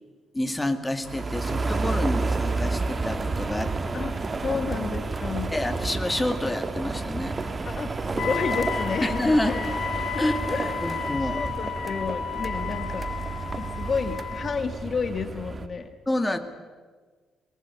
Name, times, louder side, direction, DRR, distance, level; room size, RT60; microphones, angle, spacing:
voice 1, 0.3-3.8 4.5-4.6 5.5-7.4 9.0-9.5 10.2-10.4 10.8-11.4 16.1-16.4, left 1 dB, 15° left, 8 dB, 2.1 m, -28 dB
sound 1, 1.0-15.7, right 3 dB, 30° right, 1.6 m, -30 dB
voice 2, 3.9-5.5 7.6-9.2 9.5-9.6 9.9-10.8 11.2-13.1 13.5-15.9, left 5 dB, 45° left, 9 dB, 1.5 m, -31 dB
Wind instrument woodwind instrument, 8.2-14.6, left 7 dB, 65° left, 2.4 m, -33 dB
23.0 x 21.0 x 8.3 m, 1.5 s
cardioid pair, 90°, 0 cm